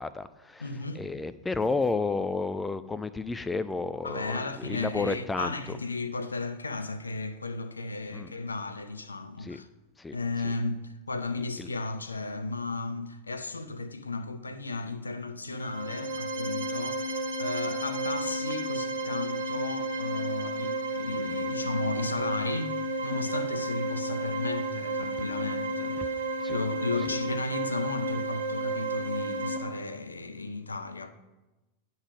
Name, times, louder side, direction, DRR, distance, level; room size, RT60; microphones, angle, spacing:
voice 1, 0.0-0.7 1.0-5.8 8.1-8.3 9.4-9.6 10.0-10.2 10.4-10.5 11.6-11.7 26.0-26.1 26.4-26.6, left 3 dB, 10° left, 0.3 m, -32 dB
voice 2, 0.6-1.1 4.0-9.7 10.1-17.0 17.4-22.7 23.0-26.1 26.5-31.1, left 3 dB, 80° left, 0.5 m, -34 dB
sound 1, 15.5-29.6, right 1 dB, 75° right, 1.0 m, -32 dB
9.6 x 4.0 x 6.1 m
figure-of-eight pair, 90°, 0 cm